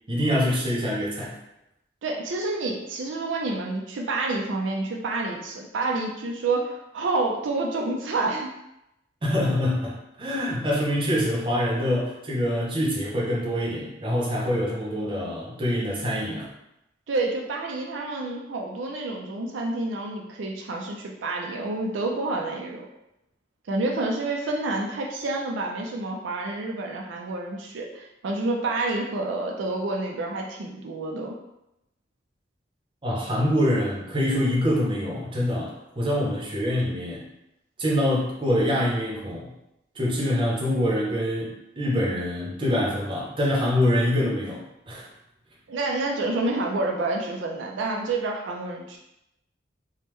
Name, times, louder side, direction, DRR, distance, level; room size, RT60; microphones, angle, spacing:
voice 1, 0.1-1.3 9.2-16.5 33.0-37.2 37.8-39.5 40.0-45.1, left 1 dB, 25° right, -4 dB, 0.6 m, -25 dB
voice 2, 2.0-8.5 17.1-22.9 23.7-31.4 45.7-49.0, right 2 dB, 75° right, 0 dB, 0.4 m, -28 dB
3.4 x 2.1 x 3.1 m, 0.86 s
head